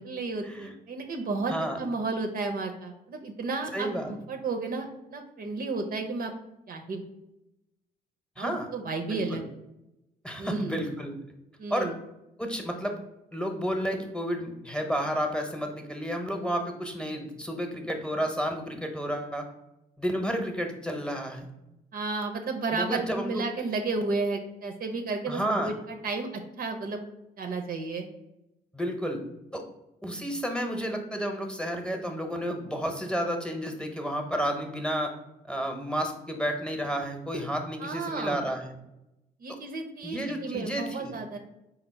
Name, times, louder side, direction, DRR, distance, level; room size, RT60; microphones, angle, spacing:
voice 1, 0.0-6.3 6.7-7.0 8.4-9.4 10.4-10.8 11.6-11.9 21.9-27.0 27.4-28.1 37.8-38.4 39.4-41.4, right 3 dB, 50° right, 3 dB, 0.6 m, -32 dB
voice 2, 3.7-4.1 8.4-8.7 9.1-9.4 10.2-11.1 11.7-11.9 12.4-13.0 13.3-19.5 20.0-21.5 22.7-23.4 25.3-25.7 28.7-29.2 29.5-29.6 30.0-35.1 35.5-38.7 40.0-41.1, equal, 5° left, 4 dB, 0.9 m, -31 dB
4.3 x 2.0 x 4.1 m, 0.91 s
hypercardioid pair, 50°, 19 cm